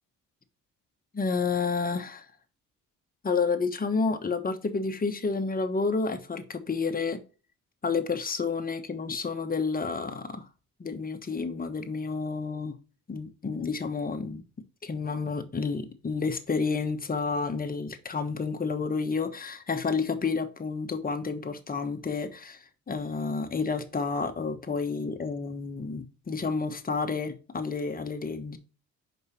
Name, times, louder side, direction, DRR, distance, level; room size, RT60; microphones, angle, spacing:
voice 1, 1.1-2.2 3.2-7.2 7.8-10.4 10.8-12.8 13.1-14.4 14.8-28.6, left 4 dB, 30° left, 1.2 m, -30 dB
5.3 x 5.1 x 4.2 m
cardioid pair, 90°, 30 cm